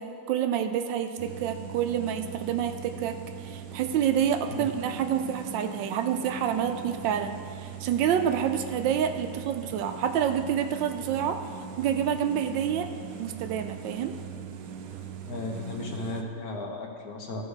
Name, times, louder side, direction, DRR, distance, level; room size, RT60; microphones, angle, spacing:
voice 1, 0.0-3.2 3.4-11.4 11.8-12.9 13.2-14.2, right 9 dB, 85° right, 7 dB, 1.4 m, -28 dB
sound 1, 1.2-16.2, right 7 dB, 65° right, 1.0 m, -41 dB
voice 2, 15.2-17.4, left 2 dB, 60° left, 2 dB, 1.5 m, -35 dB
15.0 x 5.4 x 4.8 m, 2.3 s
omnidirectional pair, 1.9 m